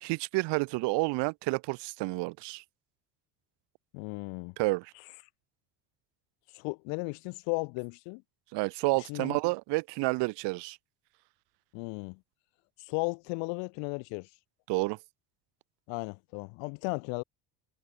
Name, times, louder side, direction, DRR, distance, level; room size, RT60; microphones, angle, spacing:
voice 1, 0.0-2.6 4.6-4.9 8.5-10.8 14.7-15.0, right 25 dB, 70° right, 1.1 m, -30 dB
voice 2, 3.9-4.5 6.5-8.2 9.1-9.4 11.7-12.2 12.8-14.3 15.9-17.2, left 34 dB, 85° left, 2.1 m, -35 dB
cardioid pair, 115°, 43 cm